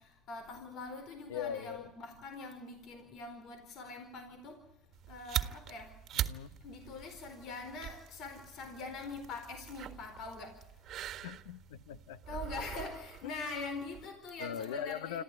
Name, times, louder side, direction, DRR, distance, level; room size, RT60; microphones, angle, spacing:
voice 1, 0.0-4.7 5.1-6.0 6.6-10.6 12.3-15.2, left 3 dB, 55° left, 4.4 m, -43 dB
voice 2, 1.3-1.9 6.1-6.6 11.2-12.4 13.2-13.6 14.4-15.2, left 9 dB, 85° left, 1.0 m, -41 dB
sound 1, 4.9-14.1, right 11 dB, 50° right, 1.5 m, -42 dB
27.0 x 14.0 x 9.9 m
supercardioid pair, 95°, 0 cm